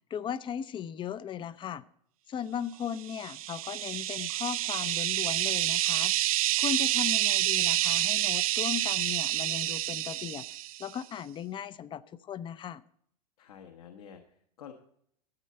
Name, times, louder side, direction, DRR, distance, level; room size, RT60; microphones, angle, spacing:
voice 1, 0.1-1.8 2.3-6.1 6.6-10.4 10.8-12.8, left 8 dB, 25° left, 17 dB, 0.6 m, -37 dB
sound 1, 3.1-10.9, right 14 dB, 65° right, 0.4 m, -28 dB
voice 2, 13.4-14.7, left 8 dB, 65° left, 4 dB, 1.3 m, -49 dB
12.5 x 9.2 x 4.2 m, 0.67 s
figure-of-eight pair, 90°, 20 cm